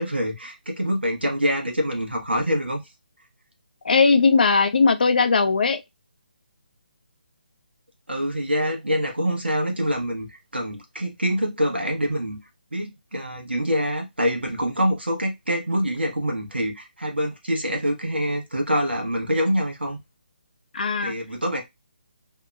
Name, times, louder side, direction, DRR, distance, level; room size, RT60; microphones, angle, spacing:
voice 1, 0.0-2.8 8.1-12.4 12.7-20.0 21.0-21.6, equal, 90° right, 0.9 m, -25 dB
voice 2, 3.8-5.8 20.7-21.1, left 4 dB, 60° left, 0.4 m, -18 dB
2.8 x 2.1 x 2.3 m
figure-of-eight pair, 150°, 6 cm